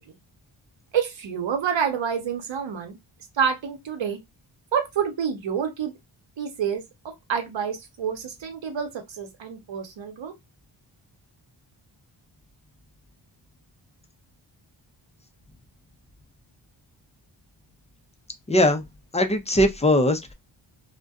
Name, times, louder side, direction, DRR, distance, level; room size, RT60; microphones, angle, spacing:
voice 1, 0.9-3.0 3.4-4.2 4.7-5.9 6.4-10.3, right 7 dB, 65° right, 0.8 m, -28 dB
voice 2, 18.5-18.8 19.1-20.3, left 1 dB, 15° left, 0.4 m, -20 dB
2.5 x 2.2 x 2.3 m
cardioid pair, 55°, 48 cm